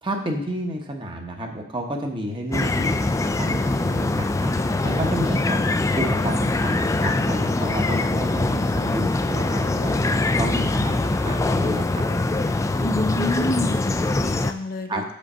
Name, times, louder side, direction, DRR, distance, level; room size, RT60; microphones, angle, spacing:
voice 1, 0.0-2.9 3.3-4.5 4.8-12.3 14.9-15.0, right 1 dB, 25° right, 2 dB, 1.0 m, -31 dB
sound 1, 2.5-14.5, left 2 dB, 15° left, 0.3 m, -23 dB
voice 2, 12.8-15.1, left 2 dB, 50° left, 4 dB, 0.7 m, -28 dB
6.4 x 5.2 x 5.5 m, 0.70 s
head